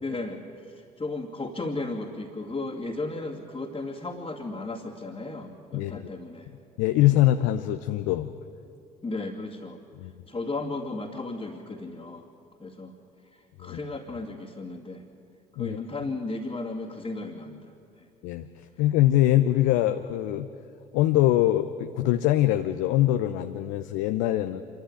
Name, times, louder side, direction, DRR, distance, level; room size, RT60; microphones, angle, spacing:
voice 1, 0.0-6.5 7.0-7.1 9.0-9.8 10.3-12.3 12.6-12.9 13.6-15.0 15.6-17.6 18.0-18.1, left 2 dB, 25° left, -2 dB, 2.4 m, -35 dB
voice 2, 5.7-6.1 6.8-8.3 10.0-10.1 13.6-13.8 15.6-15.8 18.2-20.5 20.9-24.6, left 14 dB, 65° left, 8 dB, 0.8 m, -23 dB
26.5 x 13.0 x 9.6 m, 2.6 s
figure-of-eight pair, 55°, 21 cm